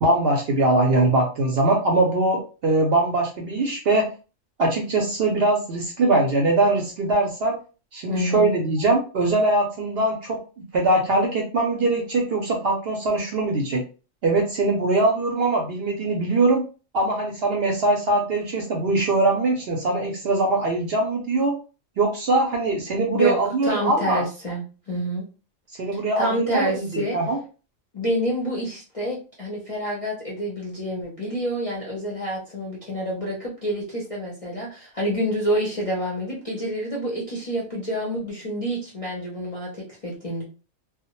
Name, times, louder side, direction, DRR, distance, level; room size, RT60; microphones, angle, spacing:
voice 1, 0.0-4.1 4.6-7.6 7.9-10.4 10.7-13.8 14.2-16.6 16.9-21.6 22.0-24.2 25.8-26.9 27.1-27.4, right 2 dB, 65° right, 0 dB, 0.6 m, -22 dB
voice 2, 8.1-8.5 23.1-23.4 23.6-25.2 25.9-27.2 27.9-40.4, equal, 40° left, -4 dB, 0.5 m, -28 dB
2.1 x 2.0 x 2.9 m, 0.34 s
omnidirectional pair, 1.4 m